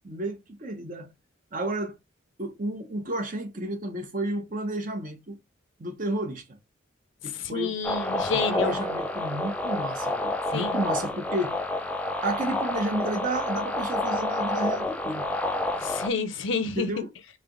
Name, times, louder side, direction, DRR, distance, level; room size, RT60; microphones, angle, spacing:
voice 1, 0.0-1.1 1.5-2.0 2.4-5.4 5.8-6.6 7.2-7.8 8.3-11.6 12.2-15.3 16.7-17.1, right 1 dB, 40° right, 0.9 m, -31 dB
voice 2, 7.5-8.8 10.5-10.8 15.8-16.9, left 4 dB, 70° left, 0.6 m, -29 dB
sound 1, 7.8-16.1, left 1 dB, 5° left, 0.4 m, -29 dB
3.2 x 2.8 x 3.8 m
head